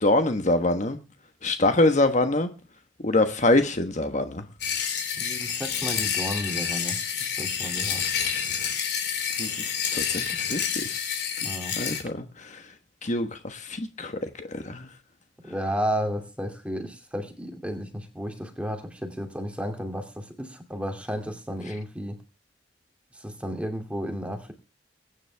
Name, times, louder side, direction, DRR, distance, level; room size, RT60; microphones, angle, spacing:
voice 1, 0.0-1.0 1.4-2.5 3.0-4.4 9.4-11.0 11.8-12.6 13.0-14.1 14.4-14.9, left 2 dB, 40° left, 7 dB, 1.3 m, -25 dB
sound 1, 4.6-12.0, left 7 dB, 65° left, 4.7 m, -29 dB
voice 2, 5.2-7.0 7.4-8.0 11.4-11.8 15.4-22.2 23.1-24.5, equal, 5° right, 5 dB, 2.6 m, -32 dB
22.0 x 10.0 x 3.5 m, 0.32 s
head